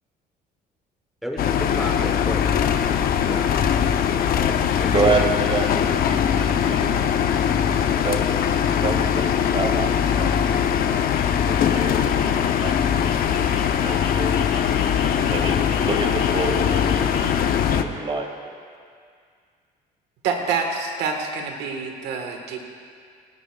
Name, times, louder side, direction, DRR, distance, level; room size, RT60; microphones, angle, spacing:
voice 1, 1.2-2.4 3.3-3.5 4.4-6.1, equal, ahead, 2 dB, 1.1 m, -33 dB
sound 1, 1.4-17.8, left 8 dB, 60° left, 0.8 m, -21 dB
voice 2, 4.9-5.2 5.5-6.9 8.0-10.3 11.4-14.3 15.3-18.3, right 3 dB, 35° right, 2 dB, 2.1 m, -28 dB
sound 2, 9.3-17.4, left 4 dB, 45° left, 2.0 m, -42 dB
voice 3, 20.2-22.6, right 5 dB, 85° right, 3 dB, 1.5 m, -27 dB
27.0 x 11.0 x 2.4 m, 2.1 s
cardioid pair, 110°, 17 cm